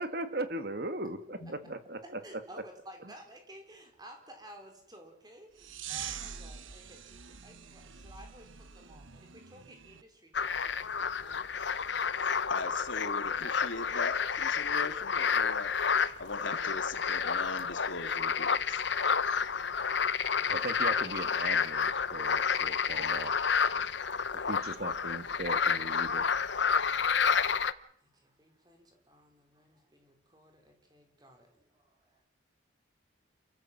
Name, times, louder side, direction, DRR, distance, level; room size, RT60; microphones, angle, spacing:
voice 1, 0.0-2.2 20.5-23.3 24.5-26.3, right 2 dB, 50° right, 1.8 m, -38 dB
voice 2, 2.0-11.8 13.2-13.4 19.5-21.4 28.0-32.2, equal, 20° right, 4.6 m, -55 dB
sound 1, 5.6-10.0, right 8 dB, 85° right, 1.2 m, -44 dB
sound 2, 10.3-27.7, left 6 dB, 65° left, 0.9 m, -30 dB
voice 3, 12.5-15.7 16.2-18.8, left 3 dB, 80° left, 2.6 m, -40 dB
28.5 x 14.5 x 7.5 m
head